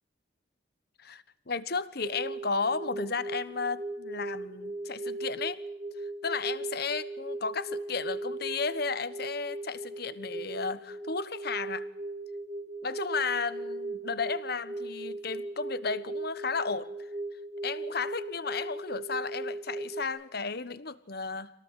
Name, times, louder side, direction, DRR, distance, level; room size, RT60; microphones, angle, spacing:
voice 1, 1.0-5.6 6.2-11.9 12.8-16.9 17.6-21.5, left 4 dB, 55° left, 1.3 m, -34 dB
sound 1, 2.0-20.0, right 2 dB, 20° right, 1.5 m, -38 dB
27.0 x 18.5 x 8.4 m
head